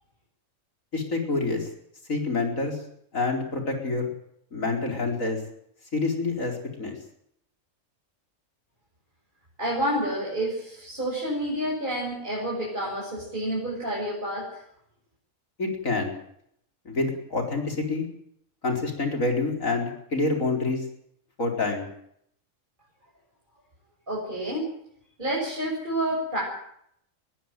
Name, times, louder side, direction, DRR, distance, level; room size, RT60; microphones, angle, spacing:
voice 1, 0.9-1.7 2.1-2.8 3.1-4.1 4.5-5.4 5.9-6.9 15.6-16.1 16.8-18.1 18.6-20.8 21.4-21.9, left 3 dB, 85° left, 3 dB, 4.9 m, -27 dB
voice 2, 9.6-14.6 24.1-24.7 25.2-26.5, right 1 dB, 40° right, -5 dB, 7.5 m, -29 dB
21.0 x 15.5 x 9.2 m, 0.71 s
omnidirectional pair, 1.4 m